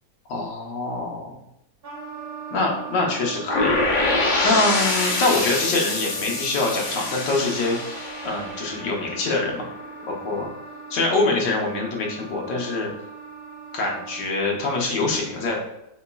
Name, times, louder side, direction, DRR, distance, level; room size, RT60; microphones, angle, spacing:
voice 1, 0.3-1.3 2.5-3.8 4.4-9.7 10.1-10.5 10.9-12.9 13.7-15.6, left 3 dB, 90° left, -1 dB, 1.6 m, -24 dB
Wind instrument woodwind instrument, 1.8-14.7, right 5 dB, 65° right, 1.5 m, -39 dB
sound 1, 3.5-9.4, left 2 dB, 55° left, 0.5 m, -25 dB
4.1 x 4.0 x 2.3 m, 0.82 s
omnidirectional pair, 1.8 m